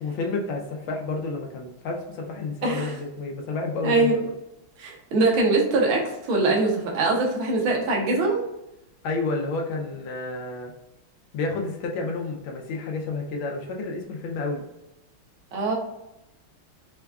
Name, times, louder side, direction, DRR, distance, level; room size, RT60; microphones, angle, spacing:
voice 1, 0.0-4.1 9.0-10.7 11.3-14.6, left 3 dB, 75° left, 1 dB, 1.3 m, -30 dB
voice 2, 2.6-2.9 3.8-4.2 4.8-6.0 6.3-8.4 15.5-15.8, right 3 dB, 80° right, -1 dB, 1.6 m, -22 dB
4.7 x 2.2 x 2.3 m, 0.92 s
omnidirectional pair, 2.3 m